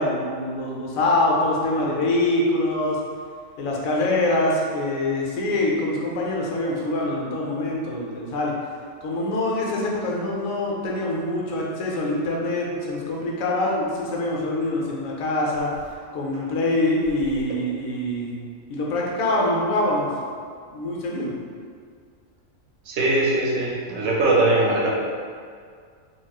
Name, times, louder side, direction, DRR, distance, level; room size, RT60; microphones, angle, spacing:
voice 1, 0.0-3.0 3.6-8.5 9.0-15.7 16.1-18.4 18.7-20.1 20.7-21.3, left 1 dB, 90° left, -3 dB, 1.1 m, -24 dB
voice 2, 22.9-24.9, right 2 dB, 75° right, -3 dB, 0.9 m, -21 dB
4.0 x 2.4 x 2.3 m, 2.1 s
omnidirectional pair, 1.4 m